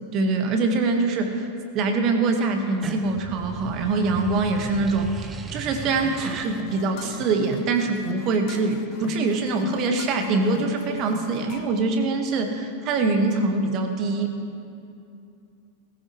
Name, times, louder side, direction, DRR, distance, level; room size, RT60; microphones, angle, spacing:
voice 1, 0.0-1.5 1.7-14.3, right 3 dB, 35° right, 5 dB, 1.6 m, -24 dB
sound 1, 2.6-7.9, right 5 dB, 20° right, 0.8 m, -38 dB
sound 2, 5.9-11.9, left 8 dB, 40° left, 1.0 m, -42 dB
18.5 x 15.0 x 3.2 m, 2.6 s
figure-of-eight pair, 90°, 0 cm